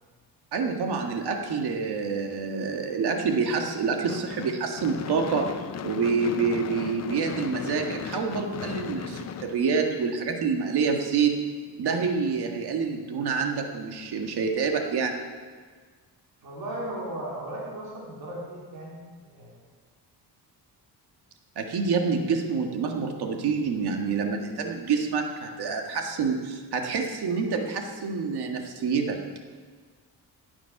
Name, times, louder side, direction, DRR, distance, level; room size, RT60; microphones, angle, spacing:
voice 1, 0.5-5.5 5.8-11.4 11.8-15.2 21.6-29.2, right 5 dB, 85° right, 3 dB, 1.8 m, -27 dB
Gunshot gunfire / Fireworks, 4.1-10.3, left 8 dB, 45° left, 0.6 m, -36 dB
voice 2, 16.4-19.5, right 1 dB, 65° right, -4 dB, 3.5 m, -36 dB
16.5 x 10.0 x 5.9 m, 1.5 s
wide cardioid pair, 175°, 38 cm